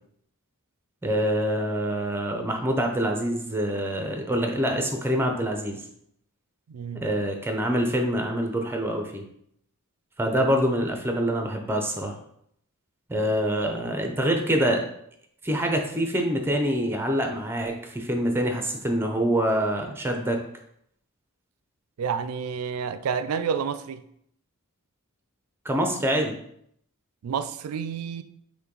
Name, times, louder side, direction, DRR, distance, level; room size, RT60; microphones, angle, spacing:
voice 1, 1.0-5.8 6.9-9.2 10.2-12.2 13.1-14.9 15.4-20.4 25.6-26.3, equal, 10° right, 0.5 m, -25 dB
voice 2, 6.7-7.0 22.0-24.0 27.2-28.2, right 6 dB, 80° right, 0.3 m, -29 dB
5.6 x 2.2 x 3.8 m
head